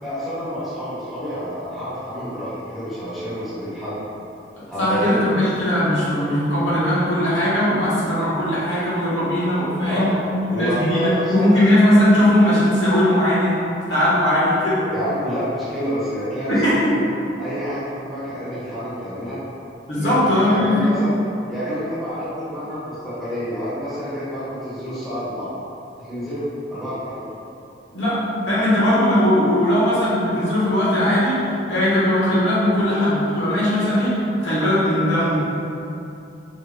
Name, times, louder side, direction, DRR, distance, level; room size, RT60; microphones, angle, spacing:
voice 1, 0.0-4.0 4.7-5.2 9.9-11.5 14.9-16.5 16.9-17.0 17.4-19.4 20.0-21.1 21.5-25.5 26.0-27.2, equal, ahead, -14 dB, 1.1 m, -28 dB
voice 2, 4.8-10.1 10.5-13.5 13.9-14.8 16.5-16.9 19.9-20.9 27.9-28.2 28.5-35.4, left 1 dB, 80° left, -9 dB, 1.2 m, -19 dB
4.3 x 3.3 x 2.3 m, 2.8 s
head